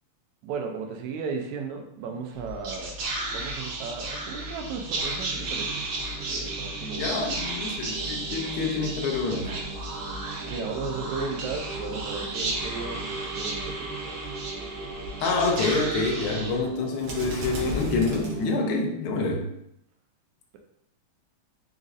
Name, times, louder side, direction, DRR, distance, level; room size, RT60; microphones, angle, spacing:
voice 1, 0.4-2.9 3.3-7.1 10.5-14.2, right 5 dB, 85° right, 3 dB, 2.0 m, -35 dB
Whispering, 2.3-18.9, right 2 dB, 65° right, 1.8 m, -33 dB
voice 2, 6.8-9.5 15.2-19.5, left 3 dB, 85° left, 1 dB, 1.2 m, -27 dB
4.9 x 4.0 x 2.5 m, 0.77 s
omnidirectional pair, 3.3 m